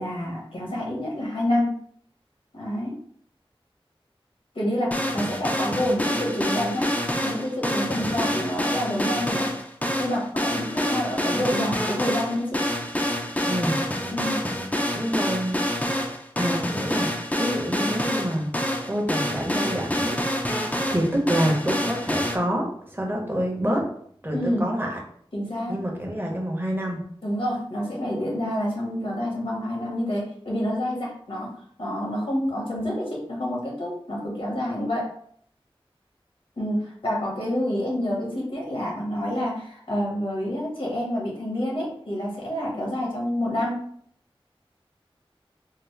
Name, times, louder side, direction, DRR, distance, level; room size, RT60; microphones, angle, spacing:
voice 1, 0.0-1.7 2.5-3.0 4.5-6.9 7.2-9.6 10.0-12.6 14.1-14.4 24.3-24.6 25.3-25.8 27.2-31.5 31.8-35.1 36.6-43.8, left 1 dB, 75° left, -3 dB, 1.2 m, -28 dB
sound 1, 4.9-22.4, equal, 15° left, 0.5 m, -27 dB
voice 2, 13.5-13.8 14.9-15.6 16.4-17.1 17.4-18.5 18.9-20.2 20.9-23.8 24.2-25.0 25.7-27.0, equal, 20° right, -1 dB, 0.9 m, -27 dB
3.7 x 2.0 x 3.2 m, 0.63 s
wide cardioid pair, 55°, 10 cm